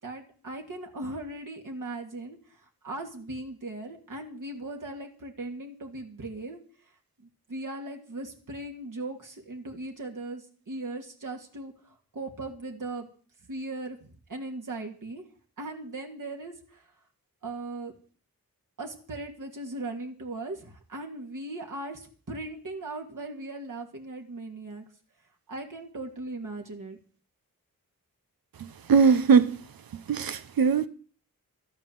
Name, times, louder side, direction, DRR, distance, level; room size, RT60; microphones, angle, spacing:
voice 1, 0.0-6.6 7.5-13.1 13.5-15.2 15.6-16.9 17.4-17.9 18.8-24.8 25.5-27.0, right 2 dB, 65° right, 2.8 m, -38 dB
voice 2, 28.6-29.7 30.1-30.9, right 5 dB, 90° right, 1.1 m, -21 dB
13.0 x 9.6 x 7.6 m
cardioid pair, 70°, 35 cm